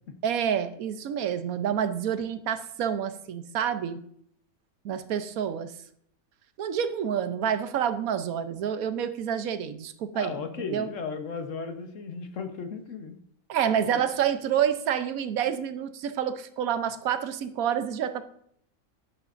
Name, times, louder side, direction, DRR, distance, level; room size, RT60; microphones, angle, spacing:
voice 1, 0.2-4.0 4.8-5.7 6.6-10.9 13.5-18.2, right 8 dB, 85° right, 10 dB, 1.2 m, -28 dB
voice 2, 10.1-13.2, left 5 dB, 65° left, 7 dB, 1.4 m, -35 dB
10.5 x 10.5 x 2.6 m, 0.68 s
omnidirectional pair, 1.5 m